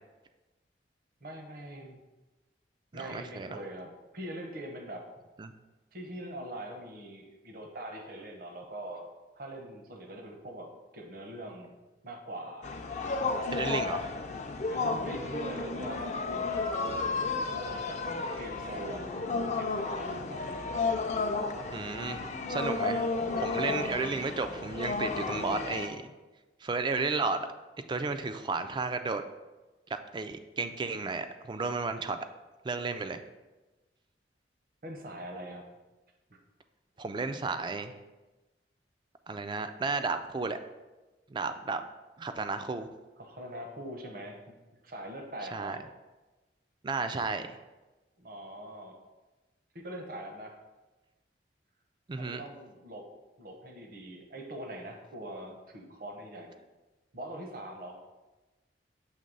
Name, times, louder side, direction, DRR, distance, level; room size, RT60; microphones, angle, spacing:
voice 1, 1.2-2.0 2.9-5.1 5.9-9.1 9.3-11.7 12.0-12.7 14.7-16.7 17.5-18.0 18.4-20.4 21.9-22.6 34.8-35.7 43.2-44.6 44.8-45.8 48.2-49.0 49.7-50.6 52.2-53.1 53.4-56.6 57.1-58.0, right 1 dB, 55° right, 3 dB, 0.8 m, -42 dB
voice 2, 2.9-3.5 5.4-5.5 13.5-14.1 21.7-22.2 22.5-23.0 23.4-26.1 26.6-27.4 27.9-29.2 29.9-32.2 32.6-33.2 37.0-37.9 39.3-40.6 41.3-41.8 42.2-42.9 45.5-45.8 46.8-47.5 52.1-52.4, right 4 dB, 25° right, 9 dB, 0.3 m, -33 dB
sound 1, 12.6-25.9, left 3 dB, 40° left, 0.4 m, -33 dB
6.5 x 3.1 x 5.3 m, 1.1 s
head